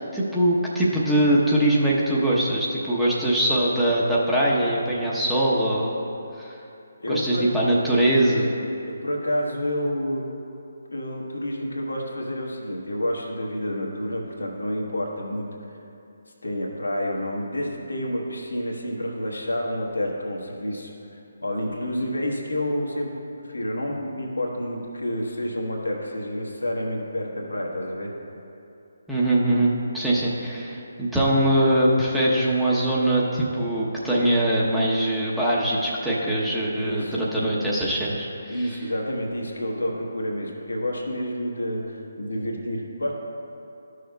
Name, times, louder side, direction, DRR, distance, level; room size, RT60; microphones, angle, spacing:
voice 1, 0.0-5.9 6.4-6.6 7.1-8.5 29.1-38.8, right 1 dB, 5° right, -8 dB, 0.9 m, -22 dB
voice 2, 7.0-7.4 8.9-10.3 10.9-15.5 16.4-20.9 21.4-23.1 23.4-28.1 36.7-37.2 38.5-43.1, left 1 dB, 85° left, -1 dB, 1.2 m, -29 dB
12.5 x 6.3 x 2.3 m, 2.7 s
figure-of-eight pair, 145°, 0 cm